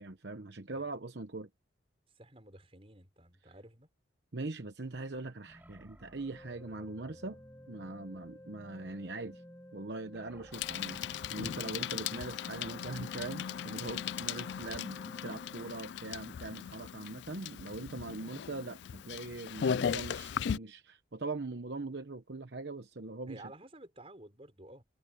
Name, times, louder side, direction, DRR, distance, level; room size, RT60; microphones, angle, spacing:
voice 1, 0.0-1.5 4.3-7.4 7.7-9.4 9.7-23.4, right 2 dB, 65° right, 1.0 m, -41 dB
voice 2, 2.1-3.9 23.3-24.8, right 1 dB, 30° right, 5.0 m, -52 dB
sound 1, 5.4-11.5, equal, 10° right, 6.4 m, -57 dB
sound 2, 6.2-15.9, left 1 dB, 15° left, 5.0 m, -55 dB
Bicycle, 10.5-20.6, left 8 dB, 70° left, 0.3 m, -37 dB
head